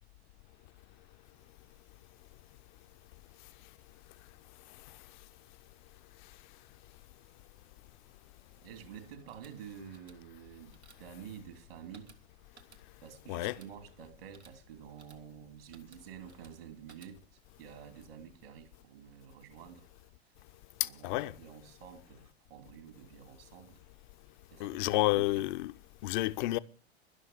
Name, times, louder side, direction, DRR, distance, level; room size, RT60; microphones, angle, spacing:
voice 1, 8.6-12.1 13.0-17.2 17.6-19.9 20.8-23.8 24.5-25.5, right 8 dB, 60° right, 2.9 m, -49 dB
sound 1, 9.2-17.5, right 4 dB, 85° right, 1.5 m, -62 dB
voice 2, 20.8-21.3 24.6-25.7 26.0-26.6, left 19 dB, 45° left, 0.7 m, -30 dB
11.5 x 11.5 x 6.8 m
figure-of-eight pair, 85°, 33 cm